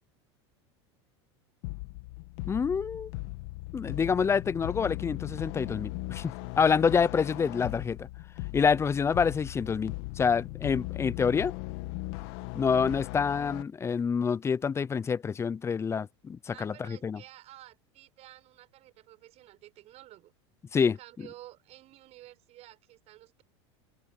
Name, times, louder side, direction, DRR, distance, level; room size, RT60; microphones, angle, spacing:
sound 1, 1.6-13.6, left 22 dB, 65° left, 1.3 m, -38 dB
voice 1, 2.5-3.1 3.7-8.1 8.5-11.5 12.5-17.2 20.7-21.0, left 6 dB, 20° left, 0.5 m, -27 dB
voice 2, 16.5-20.3 20.8-23.4, right 15 dB, 45° right, 6.4 m, -52 dB
hypercardioid pair, 110°, 15 cm